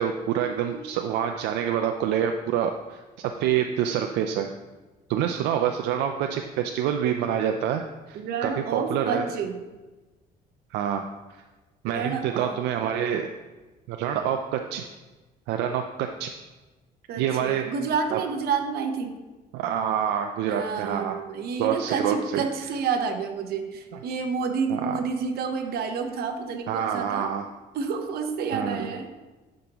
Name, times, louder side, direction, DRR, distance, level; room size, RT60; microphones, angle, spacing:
voice 1, 0.0-4.5 5.1-9.2 10.7-11.1 11.3-11.4 11.8-13.3 13.9-14.8 15.5-16.3 17.2-17.6 18.1-18.2 19.5-21.2 21.6-22.4 24.7-25.0 26.7-27.5 28.5-29.0, right 9 dB, 90° right, 5 dB, 0.5 m, -27 dB
voice 2, 8.1-9.6 11.8-12.6 17.1-19.2 20.5-27.3 27.7-29.1, right 5 dB, 70° right, 6 dB, 0.9 m, -29 dB
10.5 x 5.2 x 2.9 m, 1.2 s
cardioid pair, 110°, 17 cm